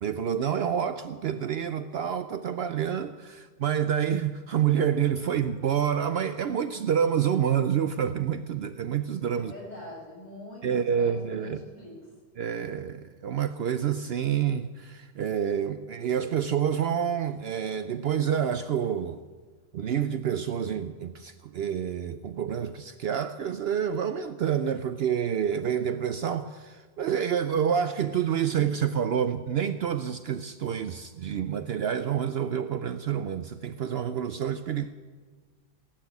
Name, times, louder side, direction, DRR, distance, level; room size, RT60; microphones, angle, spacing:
voice 1, 0.0-9.5 10.6-11.6 12.4-19.3 19.7-34.9, right 8 dB, 85° right, 0.5 m, -28 dB
voice 2, 9.4-12.0, left 1 dB, 25° left, 6.3 m, -44 dB
17.5 x 9.2 x 8.2 m
omnidirectional pair, 1.7 m